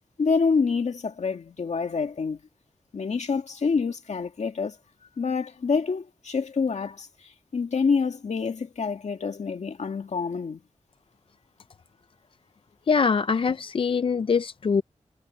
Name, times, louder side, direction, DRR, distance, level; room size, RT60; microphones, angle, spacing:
voice 1, 0.2-2.4 2.9-4.8 5.2-10.6, left 5 dB, 70° left, 2.2 m, -27 dB
voice 2, 12.9-14.8, left 5 dB, 45° left, 0.4 m, -23 dB
wide cardioid pair, 100°, 12 cm